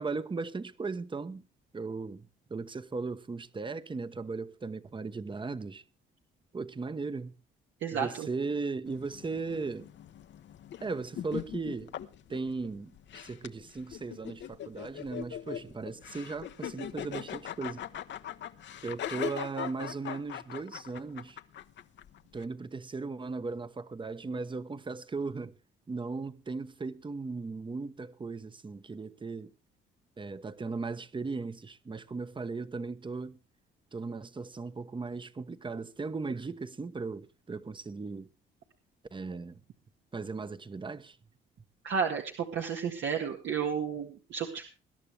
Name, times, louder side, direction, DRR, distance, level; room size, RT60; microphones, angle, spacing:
voice 1, 0.0-1.5 1.7-5.8 6.5-7.3 8.0-9.9 10.8-11.9 12.3-17.9 18.8-21.4 22.3-25.5 25.9-29.5 30.2-33.4 33.9-38.3 39.1-39.6 40.1-41.2, right 4 dB, 25° right, 1.1 m, -37 dB
voice 2, 7.8-8.3 41.8-44.6, right 6 dB, 70° right, 1.9 m, -32 dB
sound 1, 8.9-22.5, left 10 dB, 65° left, 1.0 m, -41 dB
21.0 x 11.0 x 3.4 m
cardioid pair, 90°, 20 cm